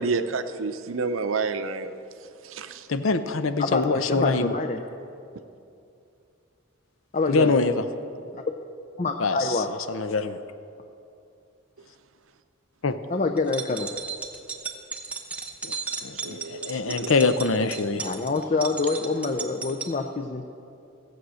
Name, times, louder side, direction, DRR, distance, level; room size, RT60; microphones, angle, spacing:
voice 1, 0.0-1.9 2.4-2.9 16.2-17.4, right 4 dB, 80° right, 10 dB, 0.6 m, -29 dB
voice 2, 2.9-4.5 7.3-7.8 9.2-10.4 12.8-13.0 15.6-15.7 16.0-18.1, left 3 dB, 80° left, 10 dB, 0.7 m, -24 dB
voice 3, 3.6-4.8 7.1-7.5 8.3-8.4 9.0-9.7 13.1-13.9 18.0-20.5, left 3 dB, 35° left, 5 dB, 0.5 m, -26 dB
sound 1, 13.4-19.9, right 5 dB, 5° right, 0.8 m, -35 dB
16.0 x 8.0 x 6.3 m, 2.6 s
head